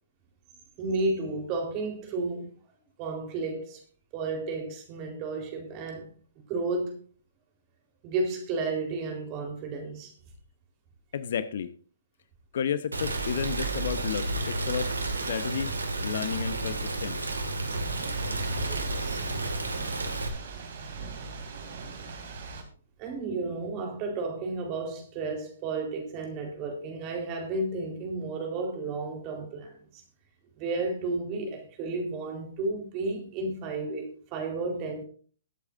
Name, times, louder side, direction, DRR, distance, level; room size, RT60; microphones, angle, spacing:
voice 1, 0.8-2.5 3.0-3.8 4.1-6.1 6.5-7.0 8.0-10.1 18.3-19.2 23.0-30.0 30.6-35.0, right 3 dB, 30° right, 4.0 m, -32 dB
voice 2, 11.1-11.7 12.5-15.7 16.0-17.2, left 8 dB, 55° left, 0.9 m, -32 dB
Rain, 12.9-20.3, right 2 dB, 80° right, 2.0 m, -31 dB
Thunder / Rain, 17.6-22.6, right 4 dB, 55° right, 3.1 m, -41 dB
21.5 x 8.2 x 2.6 m
figure-of-eight pair, 125°, 0 cm